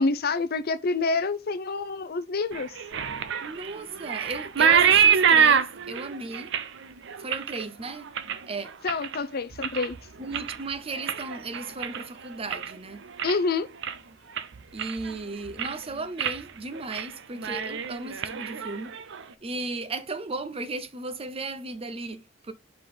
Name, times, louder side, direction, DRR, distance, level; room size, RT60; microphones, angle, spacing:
voice 1, 0.0-2.7 8.8-10.0 13.2-13.7, left 3 dB, 50° left, 0.6 m, -27 dB
sound 1, 2.5-9.2 9.5-10.0 10.3-12.8 13.1-13.5 13.8-13.9 14.4-15.2 15.4-15.8 16.2-16.4 16.7-17.1 17.3-19.2, right 7 dB, 65° right, 0.6 m, -25 dB
voice 2, 3.4-6.5 7.2-8.1 8.5-8.7 10.2-13.1 14.7-18.9 19.4-22.5, right 3 dB, 30° right, 0.7 m, -35 dB
4.8 x 3.7 x 5.3 m
head